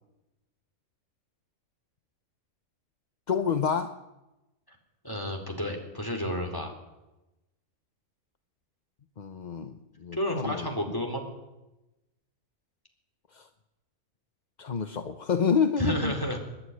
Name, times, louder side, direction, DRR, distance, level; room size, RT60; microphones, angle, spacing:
voice 1, 3.3-4.0 9.2-10.7 13.3-13.5 14.6-16.1, left 6 dB, 35° left, 8 dB, 0.8 m, -28 dB
voice 2, 5.0-6.7 10.1-11.2 15.8-16.4, equal, 15° left, 2 dB, 4.0 m, -31 dB
27.0 x 11.5 x 9.9 m, 1.0 s
omnidirectional pair, 1.5 m